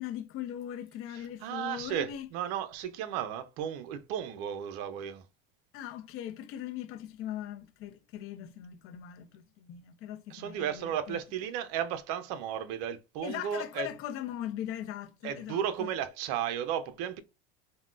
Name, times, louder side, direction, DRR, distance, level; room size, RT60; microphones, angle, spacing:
voice 1, 0.0-2.3 5.7-11.2 13.2-15.9, left 11 dB, 45° left, 0.6 m, -40 dB
voice 2, 1.4-5.2 10.3-13.9 15.2-17.2, right 9 dB, 60° right, 0.5 m, -34 dB
3.5 x 2.2 x 2.3 m
supercardioid pair, 100°, 30 cm